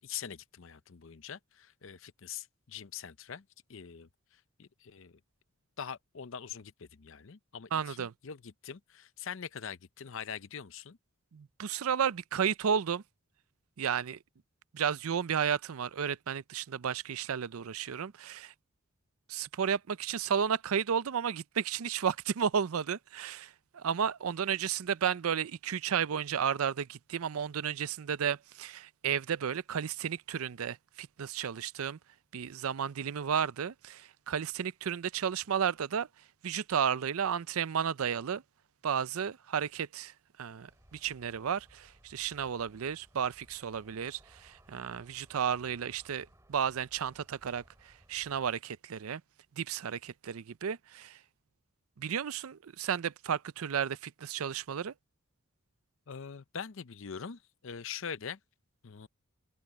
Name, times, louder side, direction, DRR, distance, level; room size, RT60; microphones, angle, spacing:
voice 1, 0.0-3.4 3.7-5.2 5.8-11.0 56.1-58.4 58.8-59.1, left 7 dB, 65° left, 0.6 m, -43 dB
voice 2, 7.7-8.1 11.3-13.0 13.8-14.2 14.7-18.5 19.3-32.0 32.3-36.1 36.4-38.4 38.8-40.1 40.4-49.2 49.6-51.2 52.0-54.9, right 7 dB, 80° right, 0.5 m, -33 dB
Aircraft, 40.7-48.5, equal, 15° right, 3.7 m, -62 dB
head